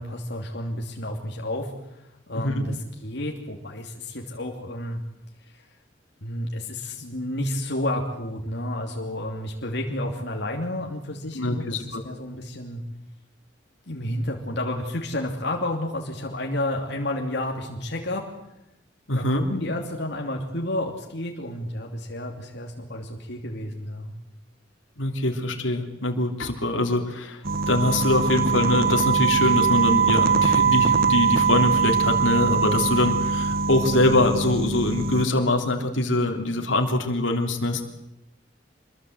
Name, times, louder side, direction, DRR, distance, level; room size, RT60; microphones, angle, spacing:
voice 1, 0.0-5.0 5.5-5.6 6.2-12.8 13.9-18.2 19.1-24.1, left 1 dB, 60° left, 1 dB, 2.8 m, -31 dB
voice 2, 11.3-12.0 19.1-19.5 25.0-37.8, left 2 dB, 85° left, 3 dB, 3.4 m, -23 dB
sound 1, 27.4-35.2, right 5 dB, 50° right, 1.5 m, -22 dB
27.0 x 22.5 x 7.9 m, 0.87 s
head